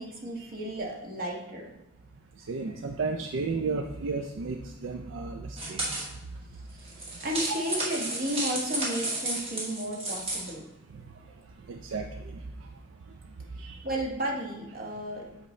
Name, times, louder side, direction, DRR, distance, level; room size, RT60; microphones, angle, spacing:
voice 1, 0.0-1.7 6.7-6.9 7.2-10.6 13.6-15.3, right 1 dB, 50° right, -1 dB, 1.3 m, -33 dB
voice 2, 2.5-5.8 7.5-7.6 11.7-12.7 13.6-13.8, right 4 dB, 80° right, 4 dB, 0.4 m, -33 dB
sound 1, 5.6-6.1 6.8-10.5, right 1 dB, 30° right, 1.4 m, -32 dB
7.8 x 4.1 x 3.2 m, 0.98 s
head